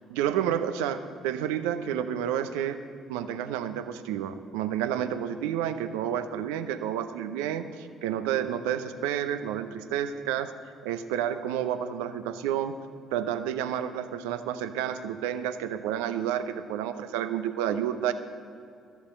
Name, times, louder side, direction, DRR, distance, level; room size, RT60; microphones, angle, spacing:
voice 1, 0.1-2.8 3.1-10.5 10.8-12.7 13.1-18.1, right 10 dB, 75° right, 10 dB, 0.6 m, -30 dB
13.0 x 7.1 x 7.9 m, 2.5 s
hypercardioid pair, 50°, 0 cm